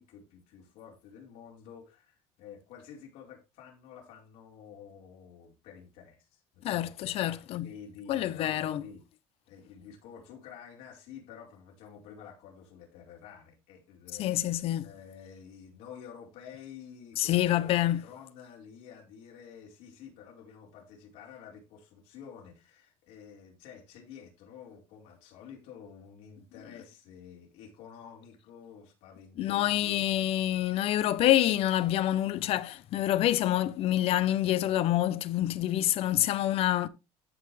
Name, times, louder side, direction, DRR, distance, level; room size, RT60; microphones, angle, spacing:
voice 1, 0.0-9.0 9.5-30.0 31.2-31.3, left 7 dB, 80° left, 4.7 m, -50 dB
voice 2, 6.6-7.7 8.1-8.8 14.2-14.9 17.2-18.0 29.4-36.9, left 13 dB, 55° left, 0.8 m, -27 dB
14.5 x 5.7 x 3.3 m
cardioid pair, 140°, 12 cm